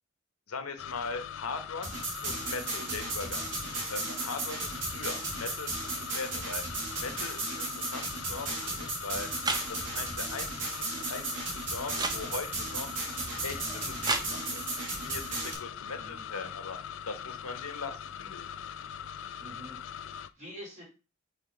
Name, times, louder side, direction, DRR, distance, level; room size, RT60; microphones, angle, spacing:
voice 1, 0.5-1.9 2.2-3.5 3.9-6.6 7.0-9.3 9.7-13.0 13.4-14.6 14.9-16.8 17.1-18.6, left 4 dB, 85° left, 8 dB, 1.0 m, -40 dB
sound 1, 0.8-20.3, left 8 dB, 60° left, 0.3 m, -42 dB
sound 2, 1.8-15.5, right 3 dB, 55° right, 2.2 m, -36 dB
sound 3, 9.4-14.8, right 3 dB, 20° right, 0.6 m, -37 dB
voice 2, 19.4-20.8, equal, 35° right, -4 dB, 3.6 m, -47 dB
5.9 x 3.5 x 5.0 m, 0.32 s
head